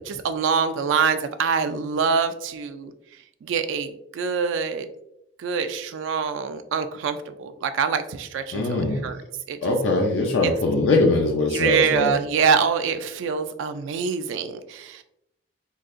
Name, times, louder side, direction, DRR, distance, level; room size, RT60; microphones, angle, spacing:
voice 1, 0.1-2.9 3.4-4.9 5.4-9.2 9.5-9.6 10.4-10.5 11.5-15.0, right 6 dB, 90° right, 9 dB, 0.3 m, -25 dB
voice 2, 8.5-9.1 9.6-12.1, left 2 dB, 85° left, 0 dB, 0.5 m, -21 dB
3.9 x 2.7 x 2.5 m, 0.81 s
head